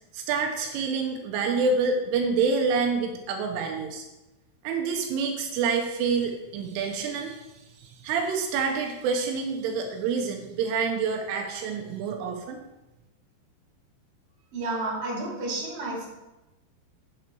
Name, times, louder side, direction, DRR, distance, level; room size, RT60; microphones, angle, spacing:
voice 1, 0.1-4.1 4.6-7.5 7.8-12.6, right 5 dB, 85° right, 2 dB, 3.3 m, -27 dB
voice 2, 14.5-16.1, right 2 dB, 35° right, -4 dB, 3.1 m, -31 dB
8.4 x 7.8 x 4.6 m, 1.0 s
omnidirectional pair, 5.7 m